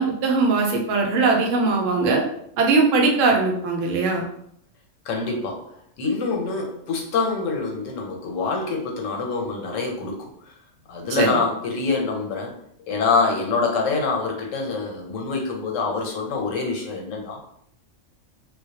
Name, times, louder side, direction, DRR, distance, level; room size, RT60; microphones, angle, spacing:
voice 1, 0.0-2.2 2.6-4.3 11.2-11.3, right 3 dB, 80° right, 1 dB, 0.9 m, -20 dB
voice 2, 5.0-5.6 6.0-10.5 10.9-12.5 12.9-17.4, left 4 dB, 85° left, 1 dB, 1.0 m, -25 dB
2.2 x 2.1 x 2.7 m, 0.71 s
omnidirectional pair, 1.3 m